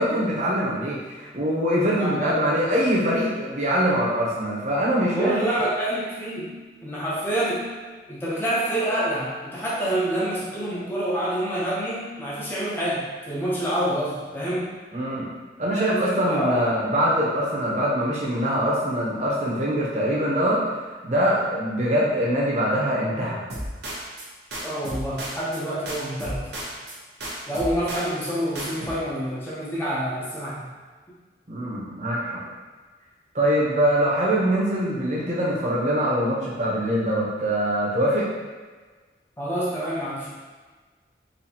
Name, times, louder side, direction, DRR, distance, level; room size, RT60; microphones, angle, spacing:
voice 1, 0.0-5.4 14.9-15.3 15.6-20.6 21.0-23.4 31.5-32.4 33.3-38.2, equal, 40° right, -6 dB, 0.8 m, -23 dB
voice 2, 1.9-2.4 5.1-6.5 6.8-7.6 8.1-14.7 15.7-16.7 24.6-26.5 27.5-30.7 39.4-40.3, right 1 dB, 10° left, -8 dB, 0.6 m, -27 dB
sound 1, 23.5-24.3 24.5-25.6 25.9-26.9 27.2-28.3 28.5-28.9, right 1 dB, 70° right, 0.8 m, -34 dB
4.1 x 2.7 x 2.8 m, 1.4 s
head